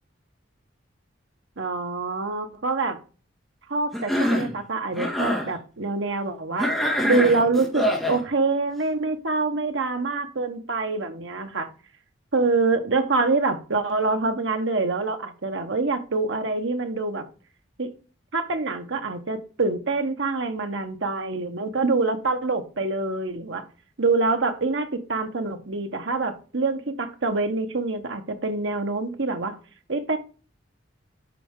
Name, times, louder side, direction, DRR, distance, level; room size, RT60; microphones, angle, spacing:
voice 1, 1.6-3.0 3.7-6.7 7.0-11.7 12.3-17.2 17.8-17.9 18.3-23.6 24.0-29.6 29.9-30.2, right 3 dB, 70° right, 7 dB, 1.2 m, -25 dB
Cough, 3.9-4.5 4.9-5.5 6.6-8.2, equal, ahead, 2.2 m, -24 dB
8.2 x 5.4 x 3.7 m, 0.36 s
head